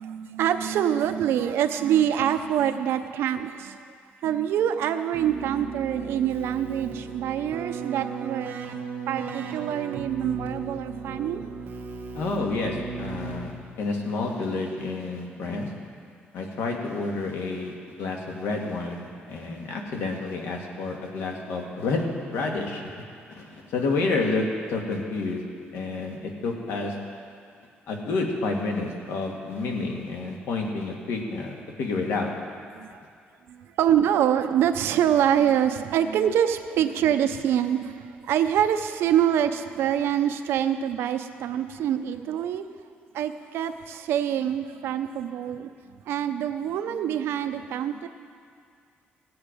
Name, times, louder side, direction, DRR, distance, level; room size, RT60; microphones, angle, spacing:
voice 1, 0.0-3.8 4.2-8.7 9.1-11.5 32.7-32.9 33.5-42.7 43.1-48.1, right 10 dB, 90° right, 9 dB, 0.6 m, -25 dB
Keyboard (musical), 5.1-13.8, right 5 dB, 55° right, 1.1 m, -36 dB
voice 2, 12.1-13.5 13.8-15.7 16.3-22.8 23.3-25.4 25.7-26.9 27.9-32.3, left 3 dB, 85° left, 1 dB, 1.8 m, -29 dB
16.5 x 7.9 x 5.1 m, 2.3 s
cardioid pair, 155°, 4 cm